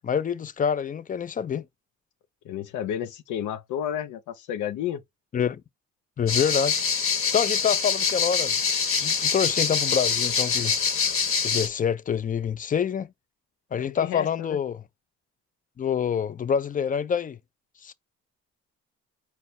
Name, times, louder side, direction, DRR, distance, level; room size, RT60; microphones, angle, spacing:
voice 1, 0.0-1.7 5.3-5.6 6.2-7.0 7.3-8.5 9.0-10.7 11.4-13.1 13.7-14.8 15.8-17.4 17.8-17.9, left 7 dB, 30° left, 0.4 m, -26 dB
voice 2, 2.4-5.0 13.7-14.6, left 10 dB, 85° left, 0.6 m, -32 dB
sound 1, 6.3-11.7, left 6 dB, 45° left, 1.0 m, -25 dB
4.2 x 2.2 x 4.1 m
cardioid pair, 90°, 30 cm